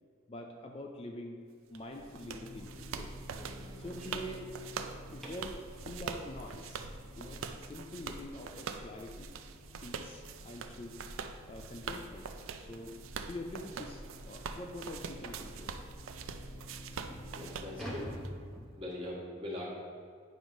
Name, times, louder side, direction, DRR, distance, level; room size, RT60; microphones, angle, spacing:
voice 1, 0.3-1.4 1.7-3.1 3.8-4.5 5.1-6.9 7.2-9.3 9.8-11.0 11.5-12.3 12.6-13.0 13.3-15.8, left 1 dB, 30° left, 3 dB, 0.4 m, -45 dB
sound 1, 1.7-18.3, right 5 dB, 90° right, 0.4 m, -44 dB
sound 2, 1.9-18.1, left 1 dB, 70° left, 0.6 m, -53 dB
sound 3, 2.6-5.7 8.5-8.6 9.0-9.2 9.6-9.7 10.2-10.3 11.4-11.5 11.9-12.1 12.7-12.8 13.2-13.3 13.8-13.9 15.3-15.6 16.3-16.4 16.9-19.2, equal, ahead, 0.9 m, -47 dB
voice 2, 17.3-18.1 18.8-19.7, left 1 dB, 30° right, -5 dB, 1.5 m, -41 dB
8.9 x 3.1 x 5.2 m, 2.2 s
head